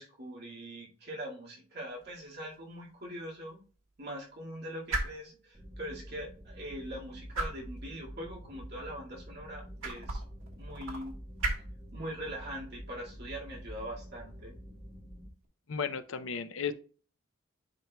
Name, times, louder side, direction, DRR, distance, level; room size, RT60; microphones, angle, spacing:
voice 1, 0.0-3.6 4.0-10.2 10.5-11.1 11.9-14.6, equal, 45° right, -4 dB, 2.0 m, -42 dB
sound 1, 1.9-15.5, right 2 dB, 65° right, 1.5 m, -42 dB
sound 2, 5.5-15.3, equal, 15° right, 1.4 m, -47 dB
voice 2, 15.7-16.7, left 6 dB, 60° left, 11 dB, 0.6 m, -34 dB
10.5 x 4.3 x 2.3 m, 0.39 s
head